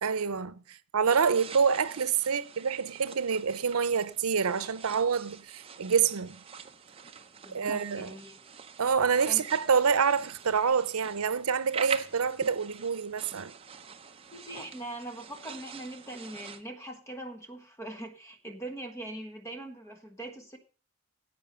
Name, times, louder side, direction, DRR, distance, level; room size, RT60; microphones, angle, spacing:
voice 1, 0.0-6.4 7.5-8.1 8.8-13.5, right 6 dB, 85° right, 0.7 m, -27 dB
sound 1, 1.1-16.6, right 6 dB, 25° right, 0.7 m, -45 dB
voice 2, 7.4-8.4 9.3-9.4 14.3-20.6, right 1 dB, 15° left, 1.4 m, -42 dB
10.5 x 8.3 x 5.5 m
head